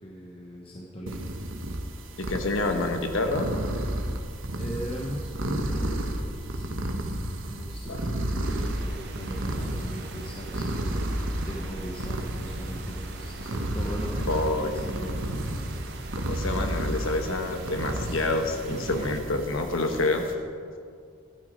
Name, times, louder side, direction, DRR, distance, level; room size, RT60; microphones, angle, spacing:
voice 1, 0.0-1.3 4.6-7.1 7.4-15.3, equal, 25° left, -2 dB, 1.0 m, -39 dB
sound 1, 1.1-20.3, right 1 dB, 75° right, 1.2 m, -32 dB
voice 2, 2.2-3.5 7.9-8.0 14.3-15.0 16.3-20.3, left 2 dB, 80° left, 5 dB, 1.1 m, -28 dB
Rain, 8.4-19.2, right 2 dB, 50° right, 1.1 m, -42 dB
12.5 x 12.0 x 5.0 m, 2.3 s
head